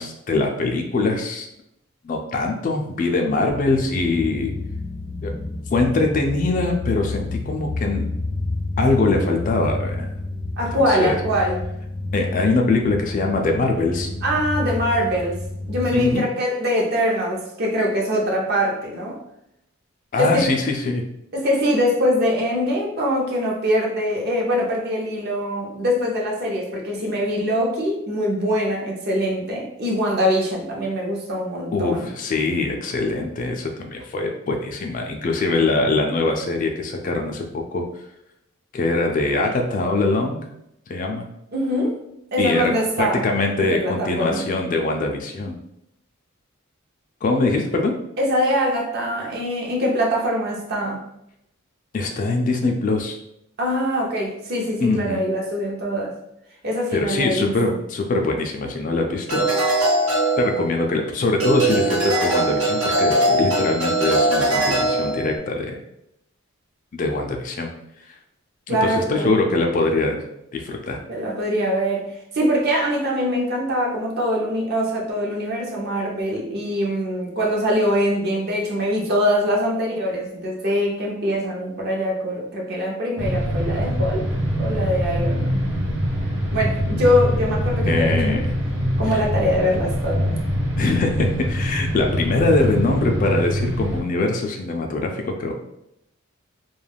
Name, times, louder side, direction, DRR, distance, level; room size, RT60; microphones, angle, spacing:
voice 1, 0.0-1.5 2.0-4.5 5.2-5.3 5.7-8.1 8.8-10.1 10.7-11.1 12.1-14.1 15.9-16.2 20.1-21.0 31.7-37.8 38.7-40.4 40.9-41.2 42.4-42.7 43.0-45.6 47.2-47.9 51.9-53.2 54.8-55.2 56.9-59.5 60.4-65.8 66.9-67.7 68.7-70.2 70.5-71.0 87.8-88.4 89.1-89.2 90.8-95.6, left 3 dB, 40° left, 3 dB, 0.3 m, -22 dB
sound 1, 3.5-16.1, left 2 dB, 70° left, 0.6 m, -29 dB
voice 2, 10.6-11.6 14.2-15.4 15.7-19.2 20.2-20.4 21.3-32.1 41.5-42.0 42.3-43.2 43.6-44.5 48.2-51.0 53.6-56.2 56.6-57.5 68.7-69.3 71.1-84.3 84.6-85.6 86.5-88.4 89.0-90.3, equal, 50° right, -1 dB, 0.6 m, -23 dB
sound 2, 59.3-61.0 61.4-65.4, right 1 dB, 90° right, 0.7 m, -21 dB
sound 3, 83.2-94.0, equal, 65° right, 1.0 m, -24 dB
2.3 x 2.2 x 3.3 m, 0.80 s
head